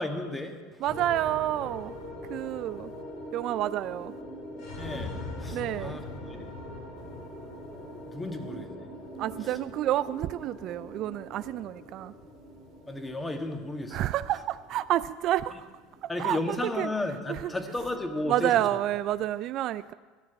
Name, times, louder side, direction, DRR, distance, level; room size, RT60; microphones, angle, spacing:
voice 1, 0.0-0.8 4.8-6.5 8.1-8.9 12.9-14.1 16.1-18.5, left 2 dB, 15° left, 5 dB, 1.7 m, -34 dB
sound 1, 0.8-19.2, left 1 dB, 70° left, 3.9 m, -42 dB
voice 2, 0.8-1.9 2.3-2.9 3.3-4.1 5.5-6.0 9.2-12.1 13.9-15.7 16.0-16.9 17.3-17.5 18.3-19.9, right 13 dB, 55° right, 15 dB, 0.3 m, -29 dB
12.0 x 7.4 x 9.7 m, 1.4 s
hypercardioid pair, 80°, 0 cm